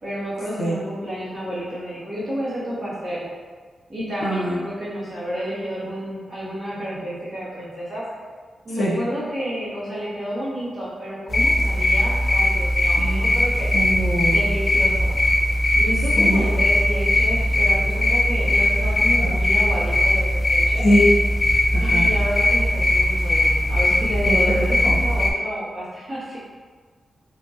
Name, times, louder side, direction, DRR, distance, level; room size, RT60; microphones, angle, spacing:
voice 1, 0.0-3.3 3.9-8.0 8.6-13.7 14.3-15.1 15.7-20.9 21.8-26.4, equal, 45° right, -11 dB, 1.4 m, -30 dB
voice 2, 4.2-4.6 8.7-9.0 13.0-13.3 13.7-14.4 16.2-16.4 19.2-19.3 20.8-21.1 21.7-22.1 24.3-25.0, equal, 85° left, -5 dB, 0.6 m, -23 dB
sound 1, 11.3-25.3, left 1 dB, 35° left, 0.3 m, -19 dB
2.8 x 2.7 x 2.5 m, 1.5 s
wide cardioid pair, 125°, 0 cm